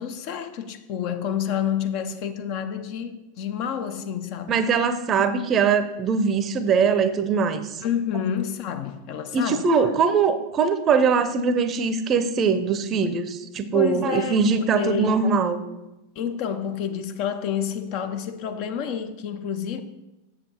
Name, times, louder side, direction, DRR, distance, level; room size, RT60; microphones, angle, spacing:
voice 1, 0.0-4.6 7.8-9.7 13.7-15.2 16.2-19.8, left 8 dB, 45° left, 0.7 m, -29 dB
voice 2, 4.5-7.7 9.3-15.6, right 5 dB, 30° right, 0.7 m, -22 dB
7.6 x 7.2 x 4.3 m
figure-of-eight pair, 90°, 0 cm